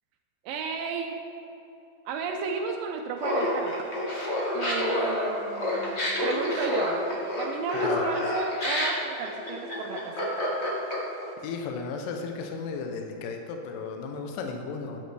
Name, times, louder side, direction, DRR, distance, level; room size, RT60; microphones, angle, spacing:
voice 1, 0.4-1.2 2.1-3.8 4.5-7.0 7.4-10.4, right 5 dB, 80° right, 2 dB, 2.3 m, -33 dB
Laughter, 3.2-11.2, left 1 dB, 50° left, 0.8 m, -28 dB
voice 2, 11.4-15.0, left 4 dB, 80° left, 3 dB, 2.4 m, -34 dB
12.5 x 9.5 x 3.4 m, 2.9 s
omnidirectional pair, 4.1 m